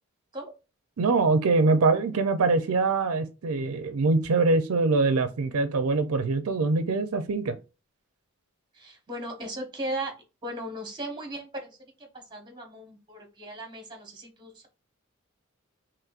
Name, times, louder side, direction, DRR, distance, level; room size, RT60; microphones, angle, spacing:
voice 1, 1.0-7.6, right 3 dB, 75° right, 0.5 m, -23 dB
voice 2, 8.7-10.1 10.4-14.7, right 1 dB, 20° right, 1.1 m, -37 dB
5.8 x 3.0 x 2.4 m
head